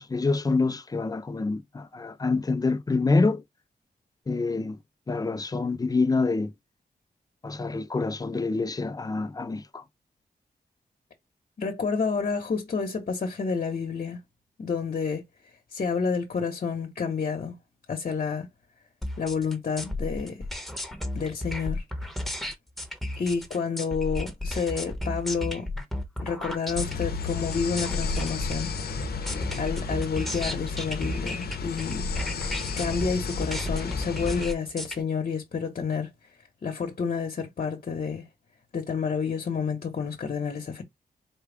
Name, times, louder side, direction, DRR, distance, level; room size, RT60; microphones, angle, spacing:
voice 1, 0.0-3.4 4.3-4.8 5.1-6.5 7.4-9.8, left 3 dB, 25° left, 0.5 m, -26 dB
voice 2, 11.6-14.2 14.6-15.2 15.7-17.6 17.9-18.5 19.2-20.4 21.1-21.8 23.2-25.7 26.2-28.7 29.6-32.0 32.8-36.1 36.6-38.3 38.7-40.8, left 5 dB, 55° left, 1.1 m, -29 dB
sound 1, 19.0-35.0, left 1 dB, ahead, 1.1 m, -33 dB
sound 2, 26.7-34.4, left 4 dB, 80° left, 0.8 m, -33 dB
4.5 x 2.3 x 3.4 m
wide cardioid pair, 105°, 16 cm